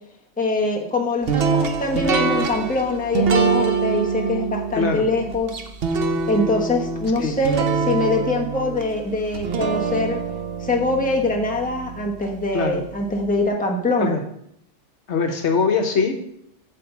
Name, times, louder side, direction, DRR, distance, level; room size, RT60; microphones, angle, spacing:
voice 1, 0.4-5.6 6.3-10.2 10.6-14.1, left 2 dB, 10° left, 0 dB, 0.9 m, -23 dB
sound 1, 1.3-12.3, right 5 dB, 55° right, 0.9 m, -24 dB
voice 2, 4.7-5.0 7.2-7.4 12.5-12.8 14.0-14.2 15.1-16.1, left 5 dB, 70° left, 5 dB, 1.1 m, -22 dB
8.4 x 3.8 x 6.8 m, 0.73 s
omnidirectional pair, 1.2 m